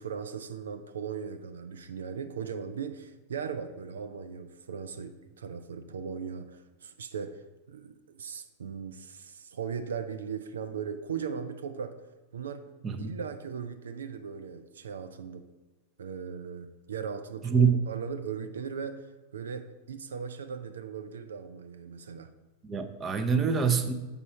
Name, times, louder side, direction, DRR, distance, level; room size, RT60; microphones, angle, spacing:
voice 1, 0.0-12.0 12.3-12.6 13.0-15.5 16.0-17.6 17.9-22.3, right 6 dB, 65° right, 8 dB, 0.4 m, -38 dB
voice 2, 17.4-17.8 22.6-23.9, right 6 dB, 20° right, 6 dB, 0.7 m, -25 dB
7.2 x 5.4 x 4.3 m, 1.2 s
figure-of-eight pair, 90°, 0 cm